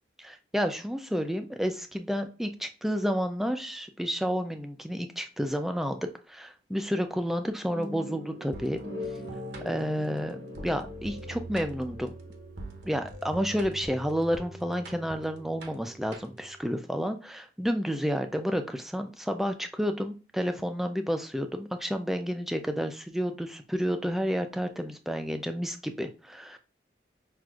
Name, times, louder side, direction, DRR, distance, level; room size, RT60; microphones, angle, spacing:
voice 1, 0.2-6.0 6.3-8.8 9.6-12.1 12.8-26.6, equal, ahead, 7 dB, 0.3 m, -30 dB
sound 1, 7.7-12.8, left 1 dB, 90° right, 1.1 m, -41 dB
sound 2, 8.5-16.6, right 1 dB, 75° right, 0.8 m, -44 dB
5.9 x 2.5 x 2.3 m, 0.34 s
head